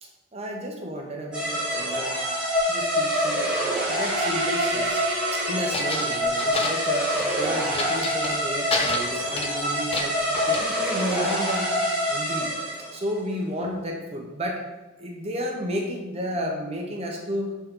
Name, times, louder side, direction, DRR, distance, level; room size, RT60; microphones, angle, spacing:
voice 1, 0.0-2.2 2.7-3.6 3.9-5.0 5.3-10.2 10.5-12.5 12.9-14.6 15.0-17.5, equal, 30° right, 0 dB, 0.9 m, -32 dB
sound 1, 1.3-13.0, equal, 5° right, 1.9 m, -26 dB
sound 2, 3.5-6.5, right 1 dB, 80° right, 1.5 m, -33 dB
sound 3, 4.6-4.9 5.7-7.3 7.7-8.4 8.7-10.6, left 3 dB, 30° left, 0.6 m, -30 dB
7.0 x 4.2 x 3.7 m, 1.1 s
head